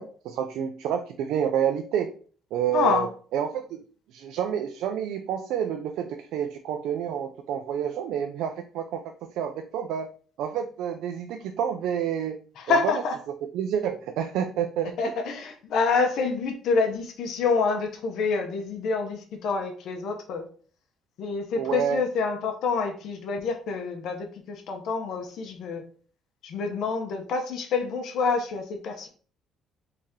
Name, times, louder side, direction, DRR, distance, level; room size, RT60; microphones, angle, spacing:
voice 1, 0.0-2.1 2.5-3.1 3.3-3.8 4.1-9.0 9.3-10.1 10.4-12.4 12.7-12.9 13.5-15.1 21.6-22.0, right 9 dB, 80° right, 6 dB, 0.3 m, -29 dB
voice 2, 2.7-3.1 12.6-13.2 15.0-20.5 21.2-25.8 26.4-29.1, left 4 dB, 65° left, 3 dB, 0.6 m, -27 dB
3.2 x 2.7 x 3.6 m, 0.43 s
cardioid pair, 145°, 0 cm